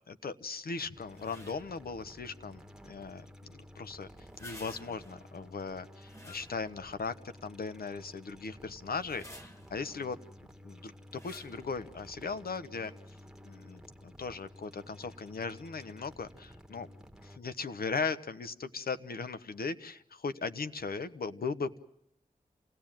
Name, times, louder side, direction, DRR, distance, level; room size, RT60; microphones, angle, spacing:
voice 1, 0.1-4.1 4.4-7.1 7.4-10.2 10.6-12.9 13.4-16.9 17.2-21.8, left 4 dB, 85° left, 11 dB, 1.1 m, -38 dB
sound 1, 0.9-17.4, left 1 dB, 5° right, 1.6 m, -53 dB
sound 2, 1.1-1.8 4.2-5.2 6.0-7.0 7.5-7.6 8.8-9.8 11.1-11.7, left 1 dB, 20° left, 2.2 m, -51 dB
28.0 x 17.5 x 9.0 m, 0.73 s
cardioid pair, 50°, 15 cm